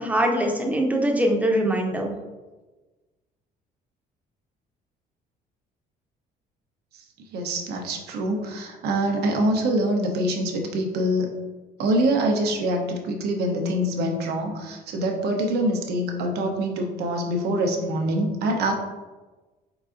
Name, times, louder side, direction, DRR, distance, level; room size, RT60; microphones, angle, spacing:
voice 1, 0.0-2.1, right 1 dB, 10° right, 1 dB, 0.7 m, -22 dB
voice 2, 7.3-11.3 11.8-18.7, right 1 dB, 75° right, 2 dB, 0.8 m, -25 dB
4.6 x 3.9 x 2.5 m, 1.2 s
cardioid pair, 110°, 17 cm